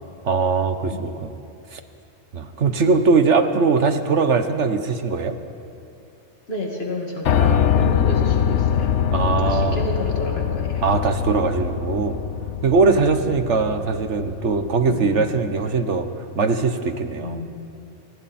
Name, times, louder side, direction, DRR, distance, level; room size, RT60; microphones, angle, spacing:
voice 1, 0.2-1.4 1.7-1.8 2.3-5.4 9.1-9.8 10.8-12.2 12.6-16.1 16.4-17.4, right 4 dB, 85° right, 8 dB, 1.5 m, -20 dB
voice 2, 6.5-8.9 9.2-10.8 13.0-13.3 14.9-15.2 17.2-17.6, left 1 dB, 60° left, 0 dB, 2.6 m, -31 dB
Piano, 7.2-15.3, left 9 dB, 80° left, 1.1 m, -23 dB
29.5 x 25.5 x 4.4 m, 2.7 s
omnidirectional pair, 1.2 m